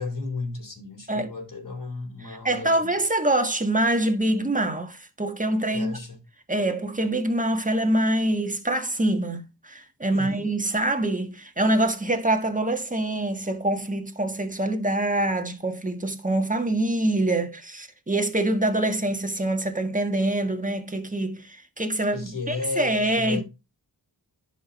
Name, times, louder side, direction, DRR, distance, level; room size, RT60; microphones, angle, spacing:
voice 1, 0.0-2.9 5.7-6.2 10.1-10.5 22.1-23.4, left 3 dB, 50° left, 3.8 m, -34 dB
voice 2, 2.3-6.0 6.5-23.4, right 1 dB, 20° right, 1.6 m, -25 dB
11.0 x 4.2 x 4.0 m
wide cardioid pair, 55°, 43 cm